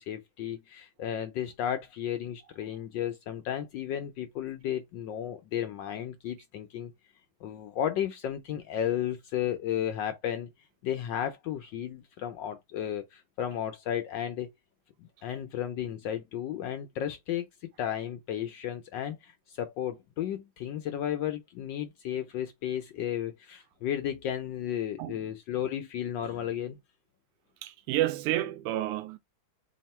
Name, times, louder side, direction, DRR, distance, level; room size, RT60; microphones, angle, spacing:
voice 1, 0.0-6.9 7.4-10.5 10.8-14.5 15.0-17.5 17.8-26.8, left 10 dB, 75° left, 1.1 m, -33 dB
voice 2, 27.6-29.2, right 14 dB, 90° right, 1.5 m, -30 dB
3.6 x 2.7 x 4.2 m
omnidirectional pair, 2.4 m